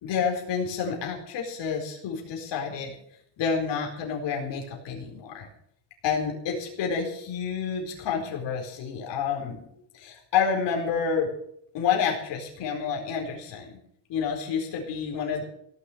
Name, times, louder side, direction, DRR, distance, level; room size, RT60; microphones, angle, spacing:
voice 1, 0.0-2.9 3.4-5.5 6.0-9.6 9.9-11.3 11.7-13.8 14.1-15.4, left 6 dB, 65° left, -1 dB, 4.4 m, -29 dB
17.5 x 6.7 x 9.2 m, 0.70 s
cardioid pair, 170°, 46 cm